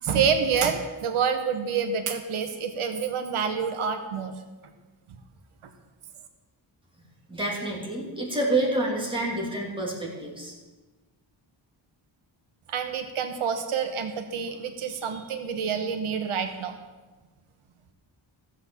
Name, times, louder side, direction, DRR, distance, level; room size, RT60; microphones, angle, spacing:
voice 1, 0.0-4.3 12.7-16.7, right 6 dB, 85° right, 7 dB, 1.3 m, -27 dB
voice 2, 7.3-10.5, right 2 dB, 10° right, -3 dB, 3.0 m, -28 dB
14.5 x 7.8 x 7.0 m, 1.2 s
wide cardioid pair, 165°, 49 cm